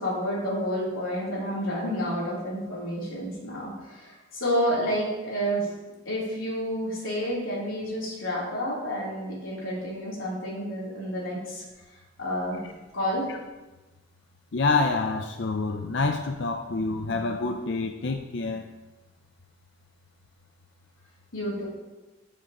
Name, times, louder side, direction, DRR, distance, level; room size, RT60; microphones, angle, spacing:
voice 1, 0.0-5.7 6.1-11.6 12.2-12.6 12.9-13.3 21.3-21.7, equal, 90° left, -6 dB, 3.6 m, -30 dB
voice 2, 14.5-18.6, left 3 dB, 60° left, 4 dB, 0.5 m, -27 dB
13.0 x 7.2 x 3.0 m, 1.1 s
head